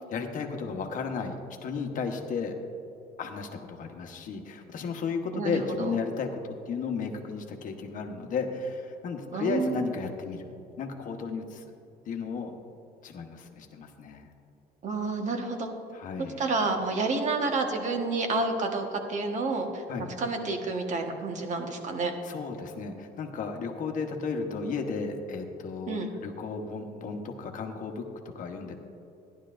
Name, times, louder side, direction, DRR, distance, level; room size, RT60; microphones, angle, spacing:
voice 1, 0.1-1.4 1.6-2.5 3.2-6.3 6.7-10.5 10.8-11.7 12.1-12.5 13.0-14.3 15.9-16.4 19.9-20.1 22.2-28.0 28.3-28.8, left 5 dB, 50° left, 4 dB, 1.1 m, -34 dB
voice 2, 5.3-6.0 9.3-9.8 14.8-15.7 16.2-19.8 20.2-22.1 25.9-26.1, right 3 dB, 45° right, 3 dB, 1.3 m, -29 dB
14.5 x 11.0 x 2.5 m, 2.9 s
cardioid pair, 135°, 17 cm